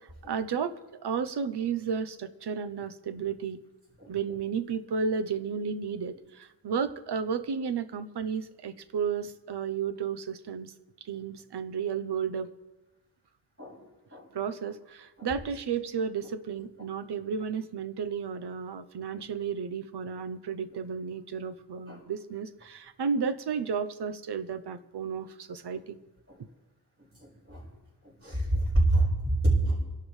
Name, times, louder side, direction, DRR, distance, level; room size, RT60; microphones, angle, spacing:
voice 1, 0.0-3.6 4.1-10.7 11.0-12.5 14.3-26.0, right 6 dB, 90° right, 12 dB, 0.8 m, -33 dB
voice 2, 28.2-29.8, right 2 dB, 35° right, -3 dB, 5.0 m, -26 dB
26.5 x 11.5 x 3.2 m, 1.1 s
wide cardioid pair, 140°, 39 cm